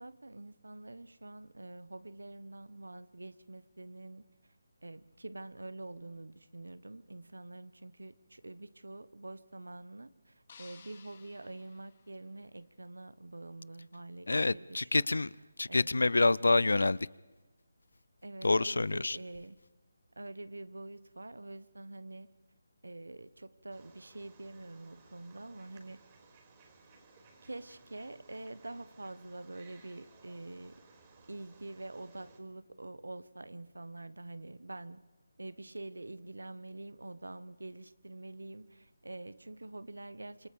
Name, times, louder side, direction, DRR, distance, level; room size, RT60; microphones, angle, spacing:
voice 1, 0.0-4.2 4.8-15.1 15.6-15.9 18.2-19.6 20.2-22.3 22.8-26.0 27.4-30.8 31.3-35.0 35.4-40.5, right 2 dB, 85° right, 16 dB, 1.3 m, -46 dB
sound 1, 10.5-12.8, left 6 dB, 45° left, 2.8 m, -58 dB
voice 2, 14.3-15.3 15.6-17.0 18.4-19.2, left 3 dB, 80° left, 23 dB, 0.7 m, -27 dB
Wild animals, 23.7-32.4, right 4 dB, 25° right, 4.8 m, -60 dB
27.5 x 25.5 x 5.2 m, 1.1 s
figure-of-eight pair, 160°, 0 cm